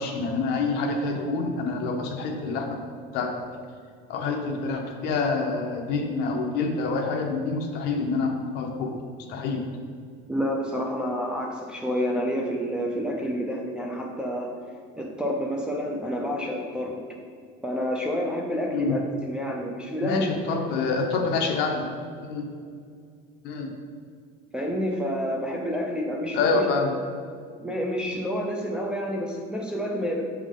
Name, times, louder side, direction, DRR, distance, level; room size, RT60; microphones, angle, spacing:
voice 1, 0.0-2.8 3.1-3.3 4.1-8.9 9.3-9.6 18.7-19.0 20.0-21.8 22.2-22.5 23.4-23.7 26.3-26.9, left 4 dB, 55° left, 2 dB, 0.9 m, -27 dB
voice 2, 10.3-14.6 15.0-17.0 17.6-20.3 24.5-26.6 27.6-30.2, equal, 5° right, -2 dB, 0.4 m, -29 dB
7.2 x 3.6 x 3.7 m, 2.1 s
cardioid pair, 150°, 21 cm